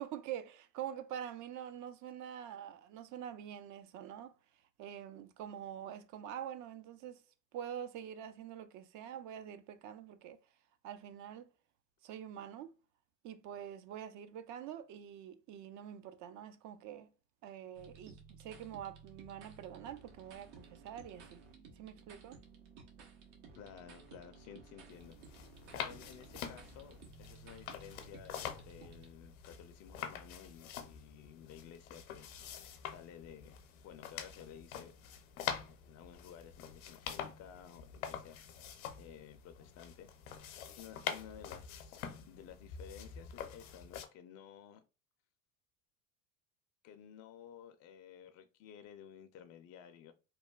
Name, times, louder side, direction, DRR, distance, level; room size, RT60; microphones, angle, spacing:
voice 1, 0.0-4.3 4.8-7.2 7.5-10.4 10.8-11.5 12.0-12.7 13.2-17.1 17.4-21.4 21.7-22.4, right 10 dB, 45° right, 0.4 m, -46 dB
sound 1, 17.7-29.1, right 5 dB, 65° right, 0.9 m, -56 dB
voice 2, 23.5-32.3 32.8-33.6 33.8-34.9 35.7-38.7 39.0-40.1 40.8-44.8 46.8-50.1, left 9 dB, 40° left, 0.4 m, -54 dB
sound 2, 24.9-44.1, left 8 dB, 80° left, 0.6 m, -46 dB
3.0 x 2.2 x 2.2 m
hypercardioid pair, 80°, 42 cm